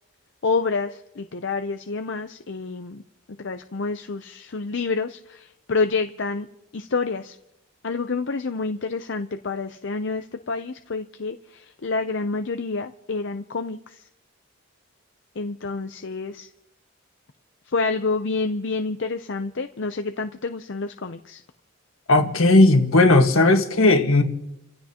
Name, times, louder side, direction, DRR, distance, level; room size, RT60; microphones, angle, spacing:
voice 1, 0.4-3.0 3.4-6.5 6.7-7.4 7.8-14.1 15.4-16.5 17.7-21.4, left 4 dB, 55° left, 0.6 m, -28 dB
voice 2, 22.1-24.2, left 2 dB, 75° left, 1.6 m, -16 dB
30.0 x 16.0 x 2.9 m
head